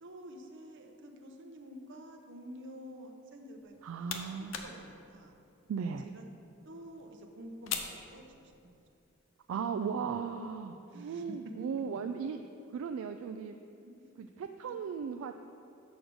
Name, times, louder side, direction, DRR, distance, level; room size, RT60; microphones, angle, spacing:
voice 1, 0.0-4.0 4.6-5.4 6.0-6.2 6.6-8.8 10.9-11.4 13.8-14.3 14.6-14.8, equal, 60° right, 3 dB, 0.7 m, -49 dB
sound 1, 3.6-8.9, left 6 dB, 65° left, 0.6 m, -44 dB
voice 2, 3.8-4.5 5.7-6.1 9.5-12.4 12.7-13.6 14.2-15.4, right 6 dB, 75° right, 7 dB, 0.3 m, -36 dB
6.4 x 5.0 x 6.1 m, 2.6 s
head